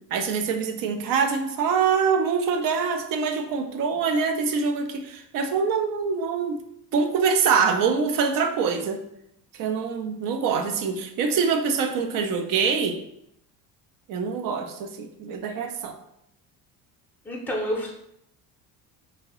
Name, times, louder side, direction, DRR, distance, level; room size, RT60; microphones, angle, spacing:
voice 1, 0.1-6.6 6.9-9.0 9.6-13.0 14.1-16.0, right 5 dB, 55° right, 7 dB, 0.5 m, -24 dB
voice 2, 17.2-17.9, equal, 5° left, -1 dB, 0.6 m, -28 dB
2.8 x 2.7 x 2.9 m, 0.76 s
cardioid pair, 125°, 39 cm